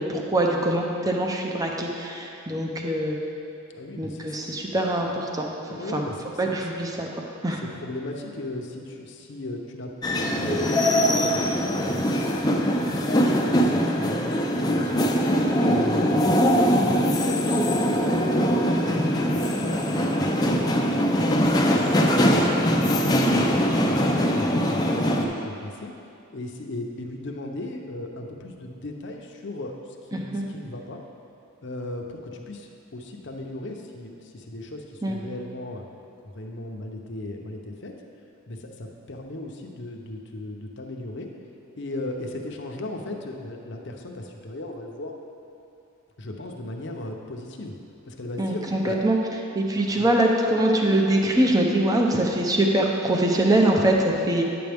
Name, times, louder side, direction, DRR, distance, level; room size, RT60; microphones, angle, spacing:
voice 1, 0.0-3.2 4.0-5.5 5.9-6.0 6.4-7.1 7.4-7.6 30.1-30.4 35.0-35.2 48.4-49.2 49.5-54.4, right 1 dB, 20° right, 0 dB, 0.7 m, -23 dB
voice 2, 3.7-4.4 5.7-6.6 7.6-15.1 15.7-22.3 22.8-25.9 26.3-29.8 30.1-31.0 31.6-35.8 36.2-37.9 38.5-41.3 41.8-45.2 46.2-47.7 48.0-49.0 49.9-50.1, left 1 dB, 60° left, 1 dB, 0.8 m, -37 dB
sound 1, 10.0-25.2, equal, 20° left, 0.6 m, -22 dB
9.6 x 7.8 x 3.5 m, 2.7 s
head